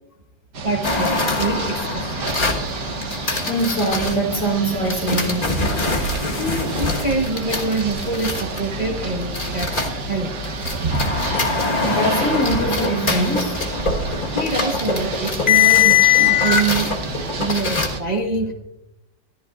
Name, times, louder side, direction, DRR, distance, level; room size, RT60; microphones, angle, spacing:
sound 1, 0.5-18.0, right 3 dB, 60° right, 2.0 m, -29 dB
voice 1, 0.6-2.3 6.4-10.3 14.0-17.0 17.4-18.5, right 3 dB, 30° right, 1 dB, 1.0 m, -25 dB
sound 2, 0.8-4.1 4.9-10.1 10.4-17.9, left 6 dB, 30° left, 1.4 m, -22 dB
voice 2, 3.4-5.6 11.8-13.8, right 1 dB, 75° left, -1 dB, 4.9 m, -23 dB
24.5 x 14.0 x 2.4 m, 0.93 s
omnidirectional pair, 2.0 m